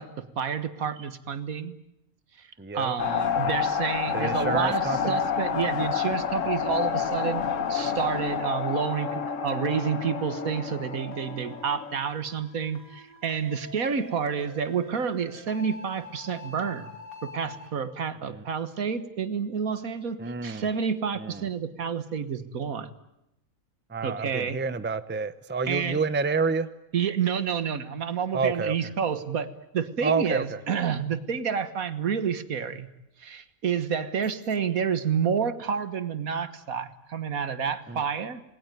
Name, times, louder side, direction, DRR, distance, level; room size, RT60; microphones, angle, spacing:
voice 1, 0.0-1.7 2.4-2.5 2.7-7.4 7.7-16.9 17.2-22.9 24.0-24.6 25.7-26.0 26.9-32.9 33.2-38.4, right 7 dB, 75° right, 12 dB, 1.8 m, -29 dB
voice 2, 2.6-2.9 3.3-3.5 4.1-5.2 18.3-18.4 20.2-20.7 21.2-21.5 23.9-26.7 28.3-28.7 30.0-30.6 37.9-38.0, right 4 dB, 10° right, 12 dB, 0.7 m, -29 dB
sound 1, 3.0-12.0, left 7 dB, 60° left, 1.5 m, -29 dB
sound 2, 4.6-17.7, left 2 dB, 80° left, 4.1 m, -48 dB
28.0 x 20.0 x 9.3 m, 0.90 s
omnidirectional pair, 1.5 m